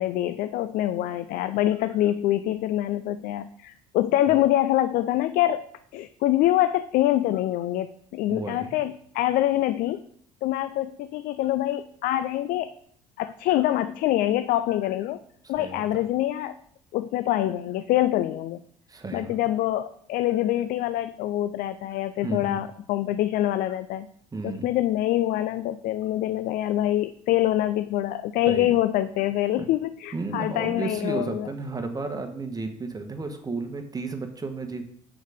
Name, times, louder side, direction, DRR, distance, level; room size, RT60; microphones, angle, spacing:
voice 1, 0.0-5.6 5.9-10.0 10.4-12.7 13.2-15.2 15.5-16.6 16.9-18.6 19.1-24.1 24.4-31.5, left 13 dB, 60° left, 12 dB, 0.4 m, -25 dB
voice 2, 8.3-8.8 15.4-16.0 18.9-19.4 22.2-22.6 24.3-24.7 28.5-28.7 29.6-29.7 30.1-34.8, right 3 dB, 20° right, 6 dB, 1.3 m, -33 dB
6.3 x 5.1 x 5.1 m, 0.65 s
hypercardioid pair, 60°, 17 cm